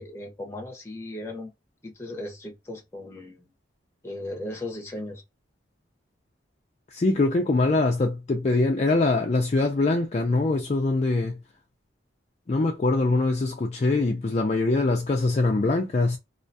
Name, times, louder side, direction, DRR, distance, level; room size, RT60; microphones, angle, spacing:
voice 1, 0.0-1.5 1.8-3.5 4.0-5.2, left 1 dB, 15° left, 0.8 m, -37 dB
voice 2, 6.9-11.4 12.5-16.2, left 2 dB, 35° left, 0.4 m, -23 dB
2.4 x 2.2 x 2.5 m
head